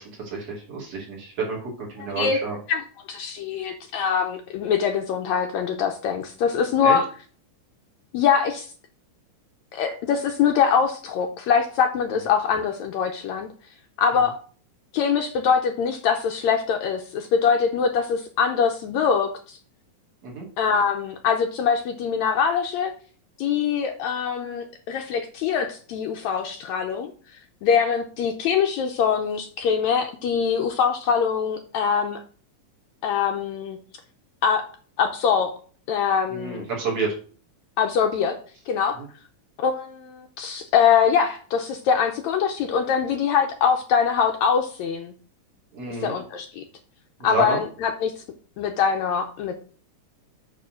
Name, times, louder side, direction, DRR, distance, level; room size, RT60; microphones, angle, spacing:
voice 1, 0.0-2.6 6.8-7.0 20.2-20.4 36.3-37.2 39.0-39.1 45.7-46.1 47.2-47.6, right 4 dB, 45° right, -4 dB, 3.4 m, -29 dB
voice 2, 2.7-7.0 8.1-8.7 9.7-13.5 14.0-14.4 14.9-19.6 20.6-22.9 23.4-27.1 27.6-32.2 33.0-33.8 34.4-34.6 35.0-35.5 35.9-36.7 37.8-38.4 38.7-39.0 39.6-45.1 46.0-46.6 47.2-48.2 48.6-49.6, left 7 dB, 75° left, 4 dB, 1.8 m, -23 dB
8.6 x 3.7 x 6.3 m, 0.41 s
omnidirectional pair, 3.7 m